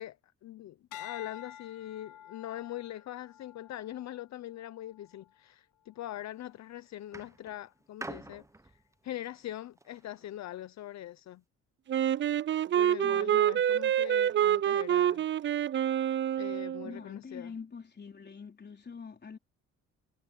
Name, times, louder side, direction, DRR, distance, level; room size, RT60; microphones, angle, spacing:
voice 1, 0.0-11.4 12.7-15.2 16.4-17.6, left 13 dB, 65° left, 0.8 m, -42 dB
sound 1, 0.9-5.4 5.9-6.3, left 11 dB, 90° left, 1.8 m, -49 dB
sound 2, 6.1-6.5 7.1-10.4 11.2-11.3, right 2 dB, 10° right, 0.9 m, -47 dB
Wind instrument woodwind instrument, 11.9-16.9, right 10 dB, 40° right, 0.4 m, -27 dB
voice 2, 13.0-13.4 16.8-19.4, left 5 dB, 35° left, 4.0 m, -45 dB
cardioid pair, 90°, 30 cm